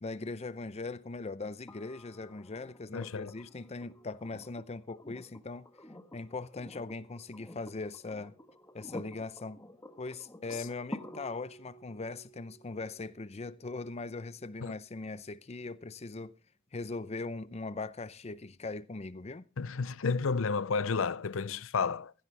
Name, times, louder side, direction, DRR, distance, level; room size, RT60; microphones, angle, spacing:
voice 1, 0.0-5.6 6.1-8.3 8.7-9.6 10.0-16.4 16.7-19.5, left 3 dB, 30° left, 0.6 m, -40 dB
sound 1, 1.7-15.6 17.4-17.5, left 1 dB, 15° left, 1.3 m, -50 dB
voice 2, 2.9-3.3 14.6-14.7 19.6-22.1, left 5 dB, 80° left, 0.6 m, -31 dB
16.0 x 15.0 x 3.3 m
head